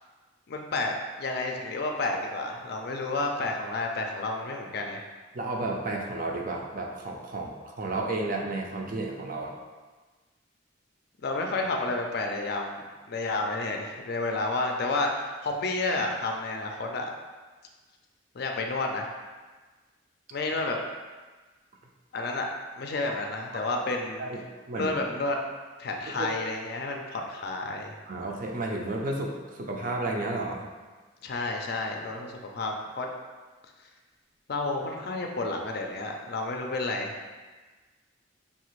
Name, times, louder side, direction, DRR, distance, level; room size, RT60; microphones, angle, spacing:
voice 1, 0.5-5.1 11.2-17.1 18.3-19.1 20.3-20.8 22.1-22.5 22.8-24.2 24.7-25.4 25.8-27.9 31.2-33.1 34.5-37.2, left 2 dB, 50° left, 2 dB, 0.4 m, -30 dB
voice 2, 5.3-9.5 23.1-23.2 23.5-23.6 24.2-24.9 26.2-26.3 28.1-30.7, right 2 dB, 45° right, 0 dB, 0.5 m, -32 dB
5.4 x 2.5 x 3.1 m, 1.3 s
head